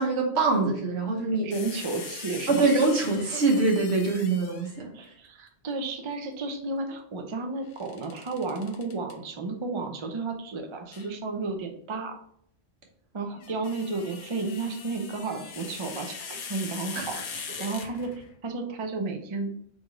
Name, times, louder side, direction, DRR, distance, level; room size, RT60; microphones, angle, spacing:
voice 1, 0.0-1.5 2.5-4.9 16.9-17.2, right 3 dB, 70° right, 1 dB, 1.3 m, -24 dB
voice 2, 1.4-2.7 4.9-12.2 13.1-18.1 18.4-19.5, right 3 dB, 35° right, 4 dB, 0.5 m, -32 dB
sound 1, 1.5-4.8 7.7-9.1 10.9-11.1 13.2-18.4, left 6 dB, 60° left, 0.6 m, -41 dB
3.8 x 3.3 x 3.6 m, 0.66 s
omnidirectional pair, 1.1 m